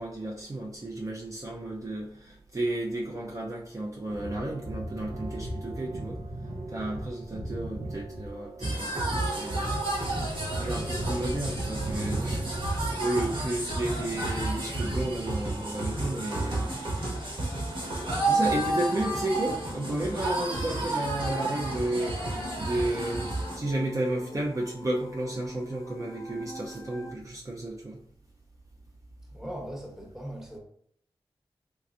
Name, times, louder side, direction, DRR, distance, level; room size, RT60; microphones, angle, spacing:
voice 1, 0.0-6.2 6.7-9.7 10.6-16.7 18.2-28.0, right 1 dB, 35° right, 0.5 m, -33 dB
sound 1, 4.1-13.0, right 1 dB, 80° right, 0.6 m, -37 dB
sound 2, 8.6-23.6, right 2 dB, 60° right, 1.2 m, -31 dB
voice 2, 10.9-11.5 16.1-16.3 16.8-17.4 18.7-18.9 29.3-30.6, right 1 dB, 5° right, 0.9 m, -41 dB
sound 3, 17.6-27.1, left 1 dB, 35° left, 0.5 m, -46 dB
3.3 x 3.0 x 2.5 m
wide cardioid pair, 80°, 10 cm